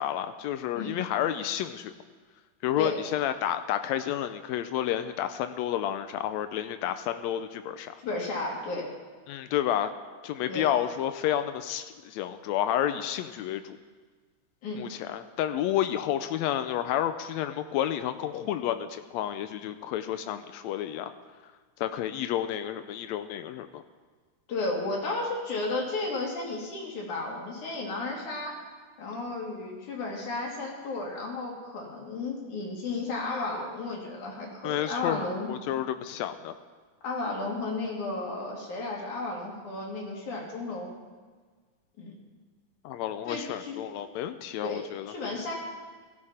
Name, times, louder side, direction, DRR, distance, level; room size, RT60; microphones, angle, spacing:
voice 1, 0.0-1.9 2.6-7.9 9.3-9.9 10.2-13.8 14.8-21.1 21.8-23.8 34.6-36.5 42.8-45.1, left 11 dB, 85° left, 10 dB, 1.6 m, -30 dB
voice 2, 8.0-8.9 10.5-10.7 14.6-14.8 24.5-28.7 29.0-35.5 37.0-40.9 42.0-42.1 43.3-43.7 44.6-45.5, left 2 dB, 70° left, -2 dB, 3.8 m, -33 dB
16.5 x 13.5 x 4.3 m, 1.5 s
omnidirectional pair, 3.7 m